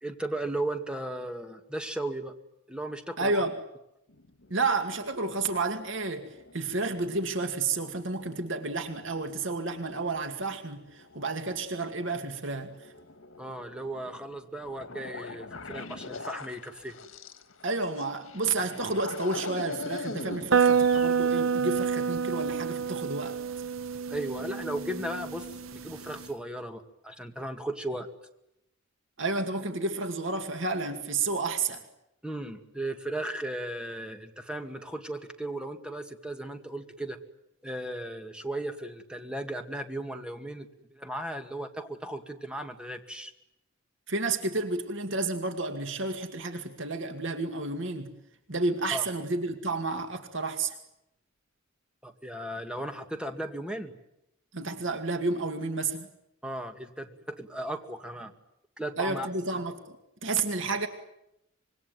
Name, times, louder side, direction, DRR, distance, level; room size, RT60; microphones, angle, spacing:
voice 1, 0.0-2.3 2.7-3.4 13.4-17.0 24.1-28.1 32.2-37.2 37.6-43.3 48.9-49.1 52.0-53.9 56.4-58.3 58.8-59.3, right 1 dB, 5° right, 5 dB, 2.2 m, -36 dB
voice 2, 3.2-3.6 4.5-6.3 6.5-12.7 17.6-23.4 29.2-31.8 44.1-48.1 48.5-50.7 54.5-56.1 59.0-60.0 60.2-60.9, right 3 dB, 65° right, 6 dB, 2.4 m, -31 dB
sound 1, 4.1-21.2, left 3 dB, 85° left, 2.0 m, -44 dB
sound 2, 20.5-26.3, right 6 dB, 80° right, 0.9 m, -28 dB
26.0 x 22.5 x 9.3 m, 0.83 s
head